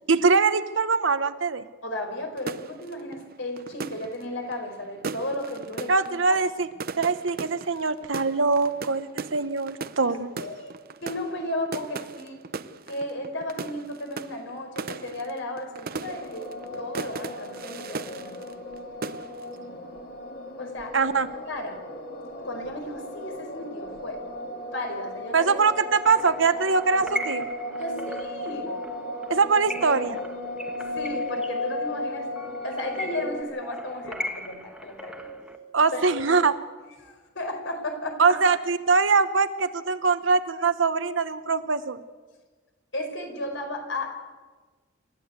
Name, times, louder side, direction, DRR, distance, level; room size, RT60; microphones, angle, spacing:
voice 1, 0.1-1.6 5.9-6.7 7.0-10.3 20.9-21.3 25.3-27.5 29.3-30.2 35.7-36.5 38.2-42.0, right 4 dB, 70° right, 11 dB, 1.1 m, -23 dB
voice 2, 1.8-5.9 10.1-12.4 12.9-18.5 20.6-21.0 21.5-21.8 22.4-24.2 24.7-25.6 27.8-28.7 30.9-32.3 32.6-35.3 35.9-36.2 37.0-38.4 42.9-44.1, left 1 dB, 75° left, 5 dB, 4.8 m, -34 dB
sound 1, 2.4-18.8 19.0-19.6, right 4 dB, 50° right, 0.7 m, -38 dB
sound 2, 16.1-33.4, left 1 dB, 55° left, 2.9 m, -36 dB
sound 3, 25.8-35.6, equal, 5° right, 1.4 m, -39 dB
28.0 x 13.5 x 8.1 m, 1.4 s
head